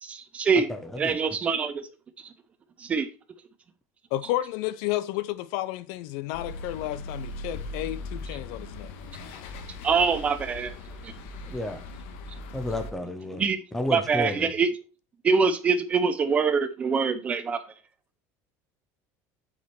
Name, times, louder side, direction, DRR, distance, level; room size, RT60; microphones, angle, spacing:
voice 1, 0.0-0.7 1.0-1.9 2.8-3.1 9.8-10.8 11.0-11.1 13.3-13.6 13.9-14.7 15.2-17.6, right 5 dB, 20° right, 0.6 m, -24 dB
voice 2, 0.7-1.2 11.5-11.8 12.5-13.4 13.7-14.5, left 1 dB, 5° left, 0.9 m, -31 dB
voice 3, 4.1-8.9, left 15 dB, 65° left, 0.5 m, -31 dB
sound 1, 6.3-12.9, left 2 dB, 85° left, 1.4 m, -39 dB
8.4 x 5.0 x 4.4 m
cardioid pair, 180°, 7 cm